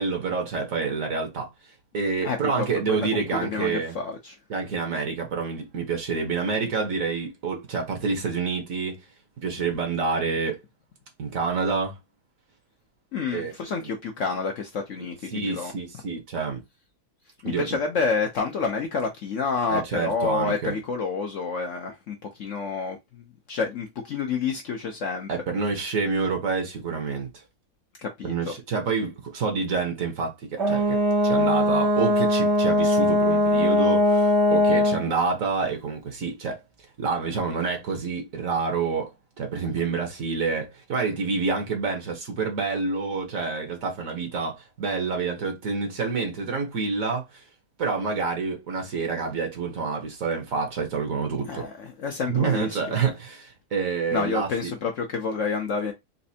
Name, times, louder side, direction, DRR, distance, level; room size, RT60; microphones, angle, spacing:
voice 1, 0.0-1.5 1.9-3.9 4.5-9.0 9.4-10.6 11.2-12.0 13.3-13.5 15.0-15.1 15.3-16.6 17.4-17.7 19.7-20.7 25.3-27.3 28.2-36.6 37.0-39.1 39.4-47.4 47.8-51.7 52.3-54.7, right 4 dB, 55° right, 1.3 m, -28 dB
voice 2, 2.9-4.4 13.1-15.7 17.4-25.3 28.0-28.5 51.5-52.8 54.1-55.9, left 5 dB, 60° left, 0.9 m, -29 dB
Brass instrument, 30.6-35.1, left 1 dB, 80° right, 1.8 m, -20 dB
4.1 x 2.6 x 2.7 m
omnidirectional pair, 1.8 m